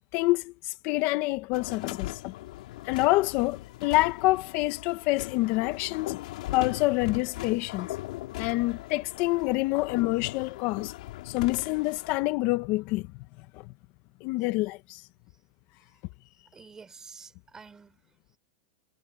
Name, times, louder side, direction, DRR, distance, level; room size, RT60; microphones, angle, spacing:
voice 1, 0.1-2.3 2.8-6.2 6.5-7.9 8.4-10.9 11.2-13.1 13.5-13.7 14.2-15.0, left 20 dB, 45° left, 1.0 m, -27 dB
sound 1, 1.5-12.1, left 16 dB, 70° left, 2.4 m, -39 dB
voice 2, 16.5-18.4, right 5 dB, 15° right, 3.5 m, -50 dB
supercardioid pair, 140°, 4 cm